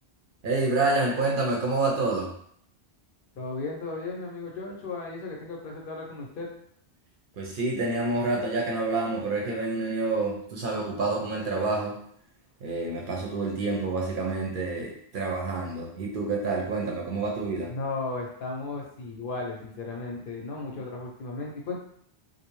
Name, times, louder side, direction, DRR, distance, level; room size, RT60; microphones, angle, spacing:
voice 1, 0.4-2.3 7.4-12.0 12.6-17.7, right 3 dB, 60° right, -1 dB, 0.6 m, -28 dB
voice 2, 3.4-6.5 17.7-21.8, left 3 dB, 65° left, -1 dB, 0.7 m, -35 dB
2.5 x 2.0 x 3.0 m, 0.66 s
omnidirectional pair, 1.1 m